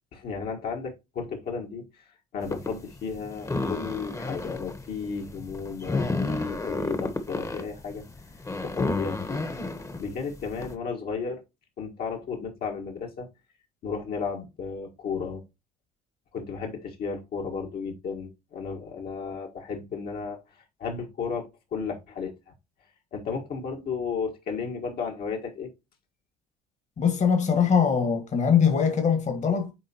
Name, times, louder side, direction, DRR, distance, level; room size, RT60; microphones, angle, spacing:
voice 1, 0.1-2.0 2.3-8.0 8.6-9.4 10.0-11.4 11.8-13.3 13.8-15.4 16.3-20.4 20.8-21.5 21.7-22.3 23.1-25.7, left 5 dB, 55° left, 1.7 m, -33 dB
sound 1, 2.4-10.7, left 3 dB, 15° left, 1.1 m, -32 dB
voice 2, 27.0-29.7, left 7 dB, 40° left, 1.6 m, -22 dB
9.2 x 3.7 x 2.9 m
hypercardioid pair, 65°, 18 cm